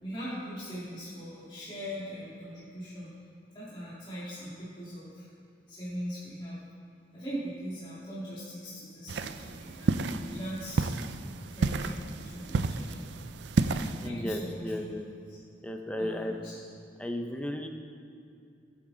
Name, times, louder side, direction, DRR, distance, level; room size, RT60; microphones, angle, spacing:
voice 1, 0.0-3.1 3.5-5.3 5.7-6.6 7.1-10.9 11.6-13.0 13.7-14.8 15.3-15.4 16.0-16.5, equal, 30° left, -10 dB, 2.2 m, -40 dB
sound 1, 9.1-14.1, right 4 dB, 75° right, 0.4 m, -31 dB
voice 2, 14.0-15.1 15.6-16.3 17.0-17.7, left 1 dB, 5° left, 5 dB, 0.6 m, -34 dB
13.5 x 7.8 x 3.9 m, 2.4 s
head